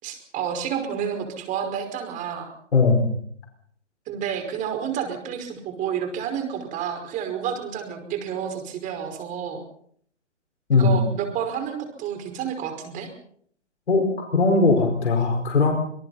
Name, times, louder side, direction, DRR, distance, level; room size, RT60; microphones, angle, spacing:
voice 1, 0.0-2.5 4.1-9.6 10.7-13.1, right 8 dB, 20° right, 6 dB, 5.3 m, -30 dB
voice 2, 2.7-3.1 10.7-11.0 13.9-14.1 14.3-15.7, left 4 dB, 60° left, 3 dB, 5.3 m, -19 dB
27.0 x 26.5 x 4.2 m, 0.63 s
figure-of-eight pair, 125°, 37 cm